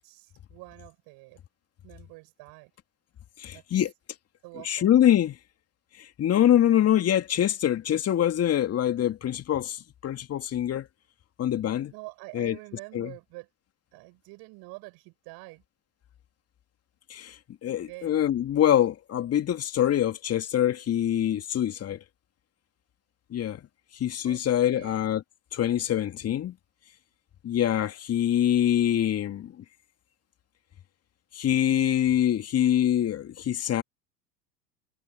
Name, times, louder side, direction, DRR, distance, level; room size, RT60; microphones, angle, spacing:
voice 1, 0.0-1.4 1.8-2.7 3.5-3.6 4.4-4.9 11.9-13.5 13.9-15.6 17.7-18.2 24.2-25.0, right 25 dB, 50° right, 6.5 m, -46 dB
voice 2, 3.4-3.9 4.6-5.4 6.0-10.9 11.4-11.9 12.3-12.5 12.9-13.1 17.1-22.0 23.3-23.6 23.9-25.2 25.5-26.5 27.4-29.6 31.3-33.8, left 11 dB, 30° left, 2.7 m, -24 dB
figure-of-eight pair, 90°, 49 cm